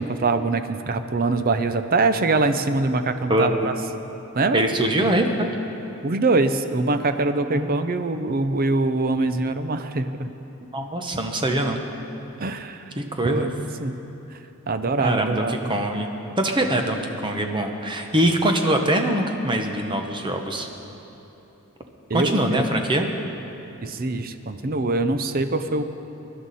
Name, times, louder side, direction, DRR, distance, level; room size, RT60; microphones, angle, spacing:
voice 1, 0.0-3.7 4.3-4.6 6.0-10.3 12.4-12.8 13.2-13.9 14.7-15.8 22.1-22.6 23.8-25.8, right 3 dB, 40° right, 10 dB, 0.6 m, -23 dB
voice 2, 4.5-5.5 7.5-7.7 10.7-11.8 13.0-13.5 15.0-16.1 16.4-20.7 22.1-23.1, right 1 dB, 20° right, 4 dB, 0.9 m, -23 dB
23.0 x 11.5 x 4.2 m, 3.0 s
head